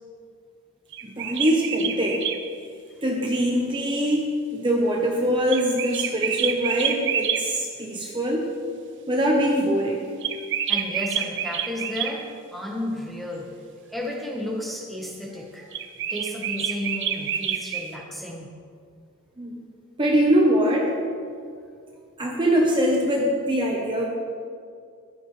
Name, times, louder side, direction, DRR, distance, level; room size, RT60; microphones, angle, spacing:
sound 1, 0.9-2.4 5.5-7.4 10.2-12.1 15.7-17.9, right 9 dB, 55° right, 0.7 m, -27 dB
voice 1, 1.0-2.2 3.0-8.5 9.1-10.1 19.4-19.6 20.0-20.9 22.2-24.1, equal, 20° right, -1 dB, 0.9 m, -23 dB
voice 2, 10.7-13.5 13.9-15.7 16.1-18.5, left 1 dB, ahead, -1 dB, 1.2 m, -33 dB
15.0 x 11.5 x 3.3 m, 2.3 s
head